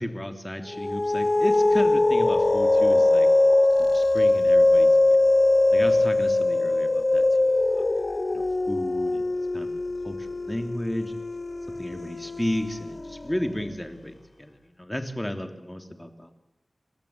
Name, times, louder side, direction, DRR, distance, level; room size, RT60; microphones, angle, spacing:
voice 1, 0.0-3.3 3.7-5.3 5.7-7.5 8.3-9.8 10.0-11.2 11.8-16.3, left 1 dB, 10° left, 6 dB, 3.1 m, -33 dB
sound 1, 0.7-13.5, left 2 dB, 45° left, 1.0 m, -22 dB
29.0 x 14.0 x 8.7 m, 0.91 s
wide cardioid pair, 65°, 0 cm